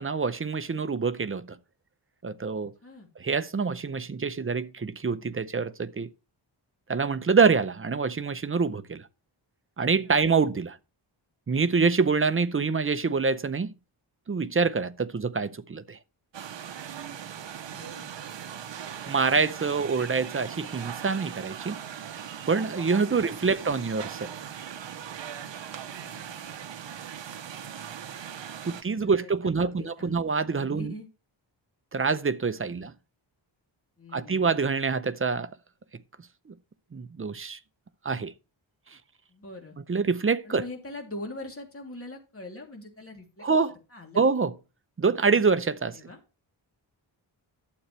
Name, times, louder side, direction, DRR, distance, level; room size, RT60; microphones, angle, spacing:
voice 1, 0.0-1.6 2.2-2.7 3.2-6.1 6.9-9.0 9.8-10.8 11.5-13.7 14.3-16.0 19.1-21.8 22.5-24.4 28.6-30.9 31.9-32.9 34.1-35.5 36.9-37.6 38.0-38.3 39.9-40.6 43.4-43.7 44.2-44.5 45.0-45.9, right 5 dB, 25° right, 0.6 m, -26 dB
sound 1, 16.3-28.8, right 9 dB, 65° right, 0.8 m, -39 dB
voice 2, 17.6-18.1 23.2-23.7 25.7-26.4 28.7-31.1 32.6-32.9 34.0-34.5 39.3-39.8 40.4-43.5 43.9-44.3 45.9-46.2, left 2 dB, 30° left, 3.0 m, -43 dB
11.5 x 7.9 x 3.2 m
wide cardioid pair, 90°, 48 cm